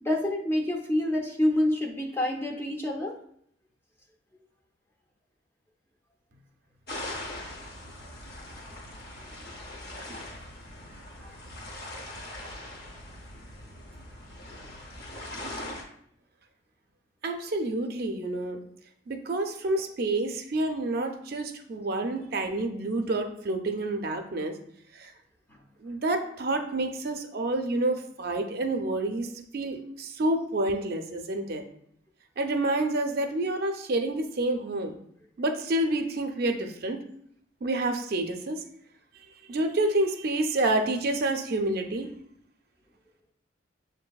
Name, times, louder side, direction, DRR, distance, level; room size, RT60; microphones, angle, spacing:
voice 1, 0.0-3.2 11.2-11.3 12.4-12.6, left 1 dB, 10° left, 0 dB, 0.4 m, -27 dB
sound 1, 6.9-15.8, left 1 dB, 50° left, 0.7 m, -41 dB
voice 2, 17.2-18.6 19.1-24.6 24.9-25.1 25.8-31.6 32.4-35.0 35.4-37.0 37.6-38.6 39.1-42.1, right 2 dB, 50° right, 5 dB, 0.4 m, -28 dB
6.8 x 2.6 x 2.3 m, 0.68 s
head